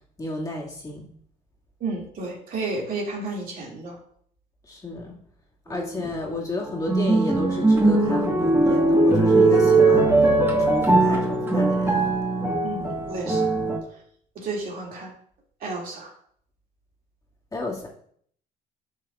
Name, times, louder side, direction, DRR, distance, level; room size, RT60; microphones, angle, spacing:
voice 1, 0.2-1.1 4.6-5.2 5.7-10.3 10.6-12.0 17.5-17.9, left 2 dB, 20° left, -4 dB, 1.9 m, -31 dB
voice 2, 1.8-4.0 12.6-13.5 14.4-15.1 15.6-16.1, right 3 dB, 55° right, -1 dB, 2.3 m, -32 dB
sound 1, 5.7-6.1 6.6-13.8, right 2 dB, 15° right, 1.3 m, -20 dB
9.4 x 5.6 x 2.4 m, 0.62 s
cardioid pair, 110°, 17 cm